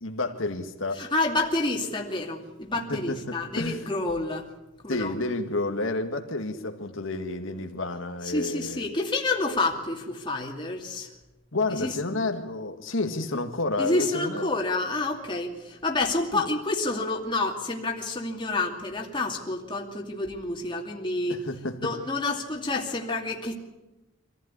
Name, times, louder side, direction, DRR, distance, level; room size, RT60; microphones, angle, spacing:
voice 1, 0.0-1.1 2.9-3.8 4.9-8.8 11.5-14.5 16.3-16.4 21.3-21.9, left 2 dB, 80° left, 2.0 m, -30 dB
voice 2, 1.0-4.5 4.8-5.1 8.2-11.1 11.8-11.9 13.8-23.6, left 2 dB, 25° left, 2.6 m, -29 dB
25.0 x 15.0 x 9.8 m
head